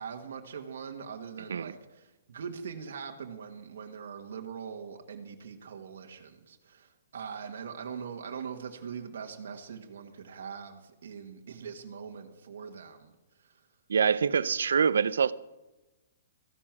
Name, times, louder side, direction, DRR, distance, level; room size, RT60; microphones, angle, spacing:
voice 1, 0.0-13.1 13.4-13.7, right 6 dB, 65° right, 1.6 m, -42 dB
voice 2, 13.9-15.3, right 6 dB, 85° right, 0.6 m, -25 dB
15.0 x 11.0 x 6.0 m
hypercardioid pair, 170°, 0 cm